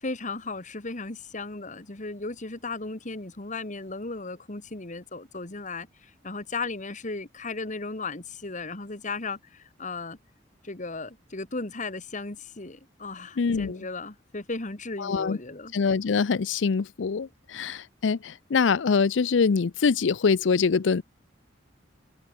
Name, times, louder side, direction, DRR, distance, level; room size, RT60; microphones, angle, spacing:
voice 1, 0.0-10.2 10.6-15.7, left 3 dB, 40° left, 2.0 m, -36 dB
voice 2, 13.4-13.8 15.0-15.4 15.7-21.0, left 5 dB, 75° left, 0.5 m, -24 dB
head